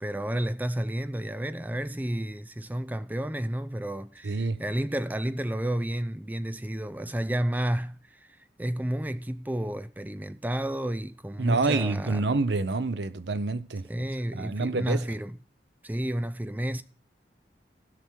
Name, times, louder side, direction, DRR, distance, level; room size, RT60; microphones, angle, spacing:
voice 1, 0.0-8.3 8.6-12.2 13.9-15.4 15.8-16.8, right 1 dB, 10° right, 0.4 m, -31 dB
voice 2, 4.2-4.6 11.4-13.9 14.3-15.0, right 3 dB, 80° right, 0.7 m, -27 dB
15.5 x 6.0 x 4.5 m
head